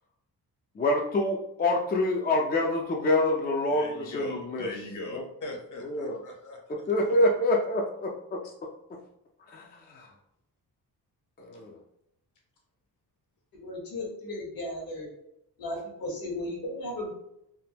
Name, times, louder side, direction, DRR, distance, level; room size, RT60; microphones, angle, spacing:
voice 1, 0.8-4.7 5.1-5.2 5.8-6.2 6.9-8.4 9.5-9.6 9.9-10.1 11.4-11.8, left 1 dB, 25° left, 0 dB, 0.4 m, -26 dB
voice 2, 3.7-6.6, left 2 dB, 50° left, 0 dB, 0.9 m, -39 dB
voice 3, 13.5-15.1 15.6-17.1, left 1 dB, 70° left, -1 dB, 1.2 m, -35 dB
3.4 x 2.1 x 2.8 m, 0.81 s
cardioid pair, 110°, 38 cm